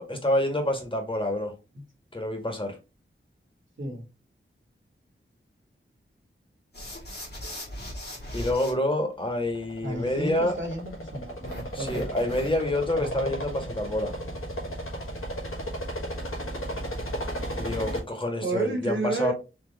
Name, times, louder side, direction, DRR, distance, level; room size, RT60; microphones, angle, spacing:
voice 1, 0.0-1.5 2.1-2.8 8.3-10.5 11.7-14.1 17.5-19.3, left 1 dB, 25° left, 1.6 m, -27 dB
sound 1, 6.7-8.7 11.4-12.8, equal, 50° left, 1.8 m, -39 dB
sound 2, 9.4-18.0, equal, 80° left, 1.4 m, -35 dB
voice 2, 9.8-12.1 13.0-13.3 18.4-19.3, right 2 dB, 65° right, 1.7 m, -32 dB
4.4 x 2.9 x 3.3 m
wide cardioid pair, 55°, 21 cm